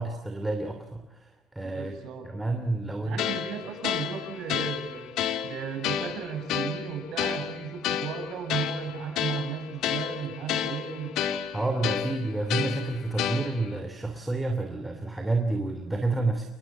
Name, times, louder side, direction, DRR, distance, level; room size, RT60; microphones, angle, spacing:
voice 1, 0.0-1.9 2.2-3.2 11.5-16.5, right 2 dB, 10° right, 5 dB, 2.8 m, -29 dB
voice 2, 1.6-2.3 3.0-5.1 5.4-11.1, right 7 dB, 55° right, 6 dB, 7.5 m, -35 dB
sound 1, 3.2-13.8, left 9 dB, 65° left, 2.6 m, -31 dB
30.0 x 21.5 x 7.4 m, 0.97 s
cardioid pair, 160°, 0 cm